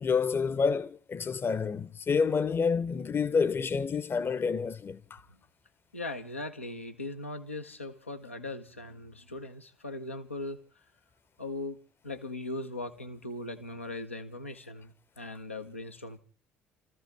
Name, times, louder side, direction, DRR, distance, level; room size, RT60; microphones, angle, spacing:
voice 1, 0.0-5.2, left 5 dB, 35° left, 0.8 m, -28 dB
voice 2, 5.9-10.6 11.4-11.8 12.0-16.2, left 2 dB, 85° left, 0.8 m, -39 dB
27.5 x 14.5 x 3.4 m
figure-of-eight pair, 50°, 7 cm